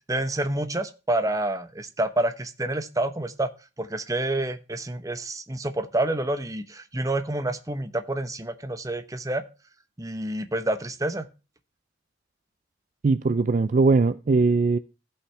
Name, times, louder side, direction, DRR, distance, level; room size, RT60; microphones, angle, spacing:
voice 1, 0.1-3.5 3.8-9.4 10.0-11.3, right 1 dB, 20° right, 0.9 m, -28 dB
voice 2, 13.0-14.8, right 3 dB, 40° right, 0.4 m, -20 dB
16.0 x 5.6 x 3.3 m
head